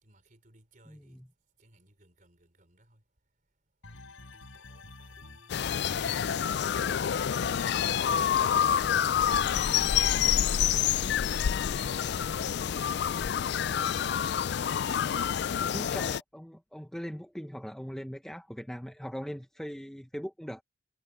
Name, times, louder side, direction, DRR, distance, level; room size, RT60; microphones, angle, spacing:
voice 1, 0.0-1.2 1.6-3.0 3.9-8.2 11.0-11.1 11.8-14.0, right 2 dB, 40° right, 4.2 m, -62 dB
voice 2, 0.9-1.2 15.7-20.6, equal, 5° left, 1.0 m, -40 dB
sound 1, 3.8-11.2, left 2 dB, 80° left, 4.2 m, -49 dB
sound 2, 5.5-16.2, left 9 dB, 55° left, 0.3 m, -27 dB
head